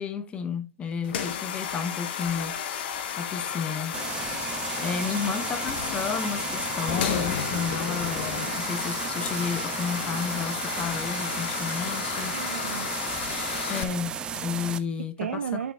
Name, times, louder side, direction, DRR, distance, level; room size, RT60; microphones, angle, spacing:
voice 1, 0.0-2.6 3.2-4.0 4.8-12.7 13.7-15.7, left 6 dB, 15° left, 0.8 m, -32 dB
sound 1, 1.0-13.8, left 8 dB, 45° left, 1.1 m, -32 dB
sound 2, 3.9-14.8, right 7 dB, 10° right, 0.4 m, -34 dB
voice 2, 12.3-13.7 15.2-15.7, right 8 dB, 65° right, 0.5 m, -35 dB
13.0 x 5.8 x 2.3 m
hypercardioid pair, 130°, 8 cm